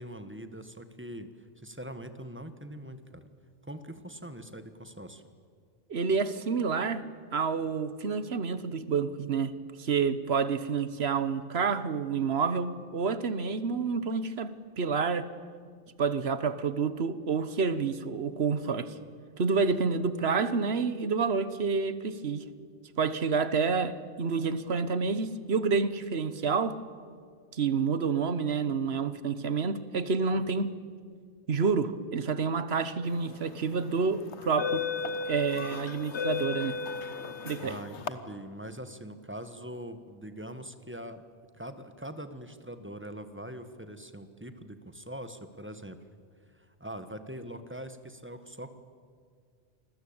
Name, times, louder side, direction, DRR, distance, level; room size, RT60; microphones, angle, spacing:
voice 1, 0.0-3.2 3.6-5.2 37.6-41.2 41.6-46.0 46.5-48.7, right 1 dB, 10° right, 1.4 m, -42 dB
voice 2, 5.9-7.0 7.3-9.5 9.8-15.3 16.0-18.9 19.4-22.5 23.0-26.8 27.5-30.7 31.5-34.9 35.3-36.8 37.4-37.8, right 5 dB, 65° right, 1.4 m, -29 dB
sound 1, 33.3-33.6 34.3-38.1, left 6 dB, 75° left, 1.4 m, -34 dB
28.0 x 20.5 x 8.8 m
omnidirectional pair, 1.2 m